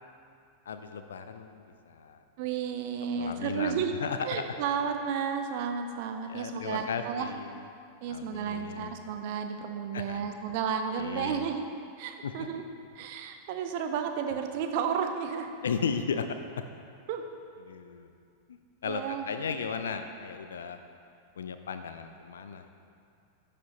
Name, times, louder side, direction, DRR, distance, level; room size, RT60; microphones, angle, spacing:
voice 1, 0.7-2.2 3.1-4.4 6.3-7.6 8.1-9.0 9.9-10.2 11.0-11.5 12.2-12.3 15.6-16.3 17.7-18.1 18.8-20.8 21.4-22.7, left 6 dB, 65° left, 8 dB, 0.3 m, -35 dB
voice 2, 2.4-3.9 4.2-7.3 8.0-11.7 12.0-12.6 12.9-15.5 17.1-17.3 18.8-19.3, right 7 dB, 50° right, 6 dB, 0.5 m, -32 dB
11.0 x 5.1 x 2.8 m, 2.4 s
figure-of-eight pair, 90°, 0 cm